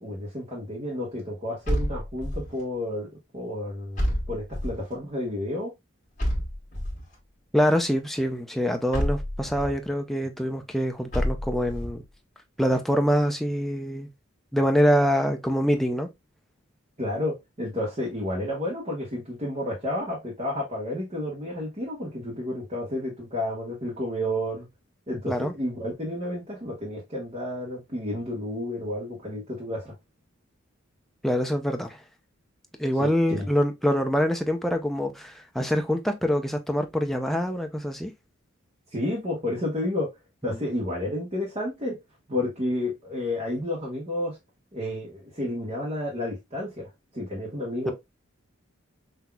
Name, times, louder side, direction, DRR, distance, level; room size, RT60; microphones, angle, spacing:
voice 1, 0.0-3.1 3.3-5.7 17.0-24.7 25.1-29.9 33.0-33.5 38.9-40.1 40.4-42.0 42.3-44.4 44.7-47.9, left 1 dB, 30° right, 1.2 m, -31 dB
sound 1, 1.6-2.6 4.0-4.9 6.2-7.1 8.9-9.8 11.1-12.0, equal, 35° left, 1.7 m, -29 dB
voice 2, 7.5-12.0 12.6-14.1 14.5-16.1 25.3-25.5 31.2-32.0 32.8-38.1 40.4-40.6 47.9-48.0, equal, ahead, 0.5 m, -25 dB
5.8 x 2.8 x 2.3 m
head